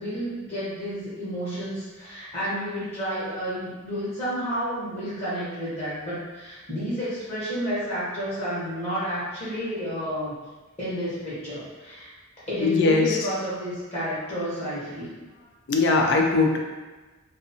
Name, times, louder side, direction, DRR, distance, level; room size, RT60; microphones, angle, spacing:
voice 1, 0.0-10.3 10.8-12.1 12.5-15.2, equal, 30° left, -10 dB, 0.9 m, -31 dB
voice 2, 12.6-13.2 15.7-16.6, left 3 dB, 55° left, 1 dB, 0.4 m, -20 dB
2.5 x 2.4 x 2.7 m, 1.3 s
head